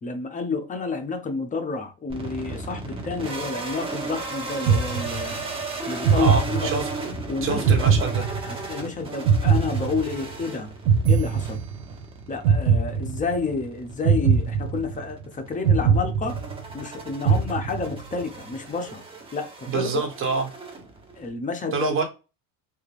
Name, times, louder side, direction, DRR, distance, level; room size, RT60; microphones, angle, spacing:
voice 1, 0.0-5.5 5.9-6.7 7.3-7.8 8.5-10.7 11.1-11.6 12.3-16.4 16.7-19.0 19.3-20.0 21.2-21.9, left 4 dB, 20° left, 0.7 m, -30 dB
sound 1, 2.1-21.3, right 2 dB, 15° right, 1.0 m, -36 dB
sound 2, 4.7-5.5 6.0-7.1 7.7-8.8 9.3-10.4 10.9-12.0 12.4-13.5 14.0-15.2 15.7-16.8 17.3-18.1, right 6 dB, 80° right, 0.6 m, -21 dB
voice 2, 6.1-6.9 7.4-8.3 19.7-20.5 21.7-22.0, right 4 dB, 35° right, 1.3 m, -26 dB
3.4 x 2.4 x 3.3 m
cardioid pair, 130°, 36 cm